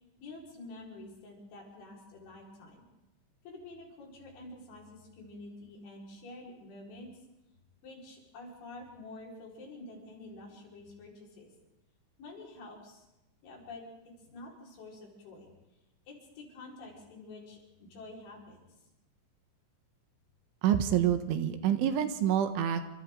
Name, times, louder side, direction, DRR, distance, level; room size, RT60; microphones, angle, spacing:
voice 1, 0.0-2.8 3.5-7.1 7.8-11.5 12.2-13.1 13.4-13.9 14.3-15.5 16.1-18.6, left 2 dB, 75° left, -2 dB, 7.2 m, -48 dB
voice 2, 20.6-22.8, right 10 dB, 85° right, 8 dB, 3.7 m, -27 dB
28.5 x 25.5 x 3.8 m, 0.95 s
omnidirectional pair, 5.4 m